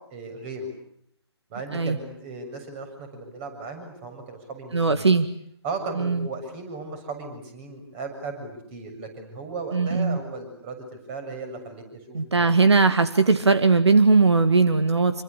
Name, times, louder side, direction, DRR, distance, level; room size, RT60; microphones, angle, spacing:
voice 1, 0.1-0.7 1.5-5.1 5.6-12.5, right 3 dB, 25° right, 7 dB, 7.1 m, -36 dB
voice 2, 4.7-5.3 5.9-6.3 9.7-10.2 12.1-15.2, right 4 dB, 75° right, 10 dB, 2.0 m, -19 dB
27.0 x 24.5 x 8.4 m, 0.69 s
figure-of-eight pair, 150°, 14 cm